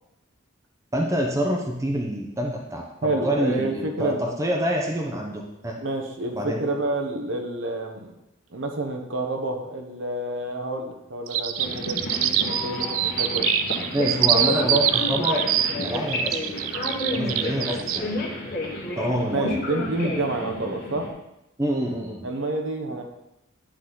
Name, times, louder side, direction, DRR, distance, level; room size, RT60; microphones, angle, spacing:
voice 1, 0.9-5.8 6.3-6.6 13.9-15.4 15.7-16.4 17.1-18.1 19.0-19.6 21.6-22.3, equal, 15° right, 0 dB, 0.8 m, -26 dB
voice 2, 3.0-4.3 5.8-8.2 8.5-13.6 19.3-21.1 22.2-23.0, right 2 dB, 65° right, 2 dB, 0.9 m, -29 dB
sound 1, 11.3-18.0, right 11 dB, 80° right, 0.4 m, -24 dB
sound 2, 11.6-21.1, left 1 dB, 50° left, 1.6 m, -31 dB
9.9 x 4.0 x 3.9 m, 0.89 s
head